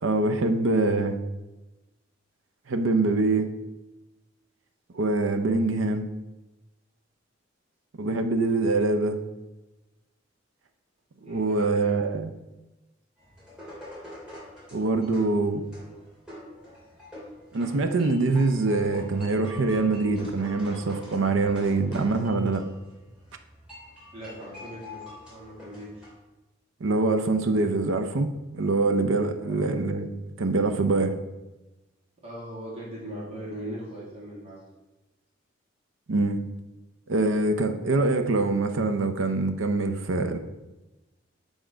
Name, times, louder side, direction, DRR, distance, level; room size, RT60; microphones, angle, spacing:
voice 1, 0.0-1.2 2.7-3.5 4.9-6.1 8.0-9.2 11.3-12.3 14.7-15.6 17.5-22.7 26.8-30.1 30.4-31.1 36.1-36.4 37.1-40.4, right 3 dB, 85° right, 7 dB, 0.6 m, -24 dB
voice 2, 11.2-12.0 24.1-25.0 25.3-26.1 29.4-29.6 32.2-34.6, right 1 dB, 30° right, -5 dB, 2.3 m, -39 dB
sound 1, 13.2-26.1, left 1 dB, 5° right, 2.5 m, -45 dB
8.1 x 3.7 x 5.0 m, 1.1 s
head